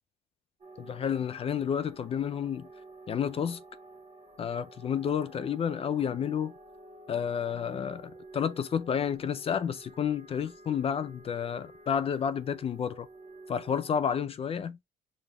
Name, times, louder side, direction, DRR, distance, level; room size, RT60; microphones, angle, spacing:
sound 1, 0.6-14.1, right 2 dB, 35° right, 1.3 m, -51 dB
voice 1, 0.8-2.7 3.1-3.6 4.4-6.5 7.1-13.1 13.5-14.8, left 8 dB, 35° left, 0.4 m, -30 dB
4.8 x 2.5 x 3.5 m
cardioid pair, 110°, 17 cm